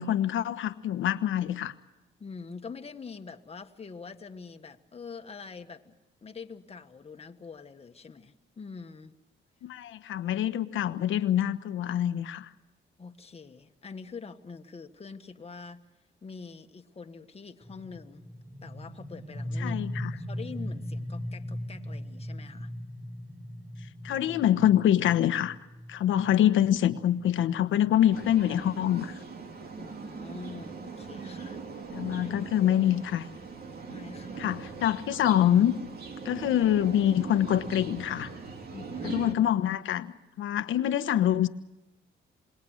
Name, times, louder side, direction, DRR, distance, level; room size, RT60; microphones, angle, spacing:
voice 1, 0.0-1.7 9.6-12.5 19.6-20.1 23.8-25.6 25.9-29.2 31.9-33.3 34.4-35.7 36.2-38.3 39.0-40.1 40.4-41.5, left 11 dB, 80° left, 11 dB, 1.2 m, -25 dB
voice 2, 2.2-9.1 13.0-15.8 16.2-18.2 18.6-19.8 20.1-22.7 29.8-31.6 33.9-34.4 38.7-39.2, left 5 dB, 30° left, 6 dB, 1.6 m, -44 dB
sound 1, 17.6-29.1, left 1 dB, 10° right, 5.3 m, -39 dB
sound 2, 28.1-39.3, right 4 dB, 50° right, 2.6 m, -40 dB
28.0 x 21.0 x 6.5 m, 1.0 s
cardioid pair, 90°, 20 cm